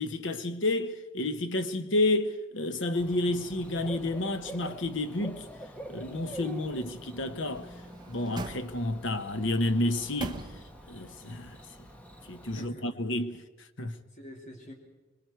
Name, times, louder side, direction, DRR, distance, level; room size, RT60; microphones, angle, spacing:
voice 1, 0.0-5.5 5.9-7.7 8.1-10.5 10.9-11.6 12.3-13.4 13.8-14.0, left 2 dB, 60° left, 1.1 m, -30 dB
Bird / Cricket, 2.9-12.7, right 1 dB, 5° left, 1.3 m, -46 dB
sound 1, 7.5-9.2 9.7-11.0 11.4-11.5, right 2 dB, 20° right, 1.0 m, -42 dB
voice 2, 12.4-13.0 13.8-14.7, equal, 35° left, 3.5 m, -47 dB
25.5 x 22.0 x 4.6 m
head